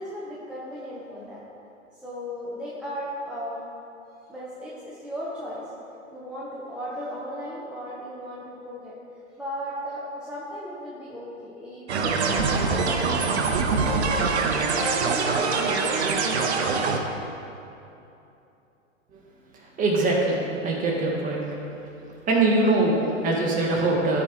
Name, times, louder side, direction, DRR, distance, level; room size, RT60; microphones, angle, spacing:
voice 1, 0.0-1.4 2.0-3.6 4.3-5.6 6.1-9.0 9.4-14.2 14.7-15.9, equal, ahead, -8 dB, 0.8 m, -36 dB
sound 1, 11.9-17.0, right 4 dB, 55° right, 0.9 m, -24 dB
voice 2, 19.8-21.5 22.3-24.2, right 2 dB, 20° right, -2 dB, 1.5 m, -22 dB
14.0 x 5.2 x 3.0 m, 2.8 s
figure-of-eight pair, 105°, 39 cm